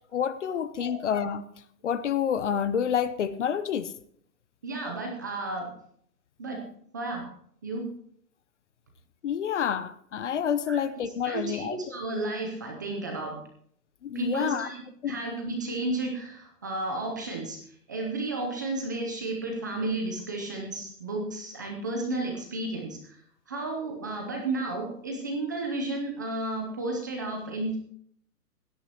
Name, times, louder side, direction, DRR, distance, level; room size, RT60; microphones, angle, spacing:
voice 1, 0.1-1.4 1.8-3.9 9.2-11.8 14.0-14.7 15.0-15.2, left 8 dB, 45° left, 15 dB, 0.7 m, -28 dB
voice 2, 4.6-5.7 6.4-6.6 6.9-7.2 7.6-7.8 10.7-10.8 11.2-13.4 14.1-27.8, right 2 dB, 10° right, 1 dB, 0.5 m, -32 dB
17.0 x 12.0 x 2.9 m, 0.64 s
hypercardioid pair, 150°, 49 cm